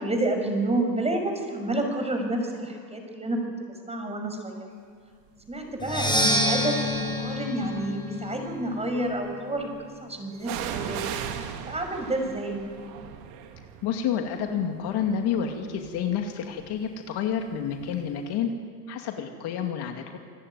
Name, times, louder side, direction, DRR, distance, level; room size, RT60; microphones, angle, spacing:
voice 1, 0.0-3.5 3.8-4.7 5.5-9.7 10.0-11.0 11.7-12.7, right 1 dB, 10° right, 4 dB, 5.9 m, -29 dB
sound 1, 5.5-5.8 6.6-7.5 10.4-18.1 18.3-18.4, right 9 dB, 70° right, 2.8 m, -39 dB
Percussion, 5.8-9.6, left 1 dB, 10° left, 6.6 m, -28 dB
voice 2, 13.8-18.5 18.9-20.2, left 8 dB, 50° left, 4 dB, 2.5 m, -29 dB
27.0 x 16.5 x 9.5 m, 2.1 s
supercardioid pair, 105°, 50 cm